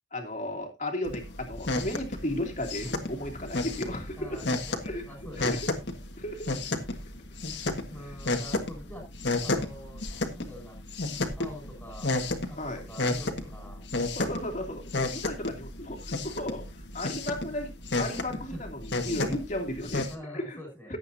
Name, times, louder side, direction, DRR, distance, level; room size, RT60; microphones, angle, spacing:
voice 1, 0.1-4.4 4.8-5.0 5.4-5.7 6.2-6.5 8.0-8.2 12.6-12.8 14.1-16.6 16.9-17.7 18.0-20.6 20.9-21.0, left 1 dB, 40° left, 3 dB, 2.7 m, -35 dB
sound 1, 1.0-20.1, left 2 dB, 70° left, 1.7 m, -33 dB
voice 2, 4.1-5.6 7.9-9.0 9.4-10.0 10.3-10.8 11.4-12.2 12.5-13.8 18.3-18.6 19.3-19.4 20.1-20.9, equal, 10° left, 1 dB, 6.5 m, -44 dB
17.0 x 8.3 x 2.8 m, 0.25 s
head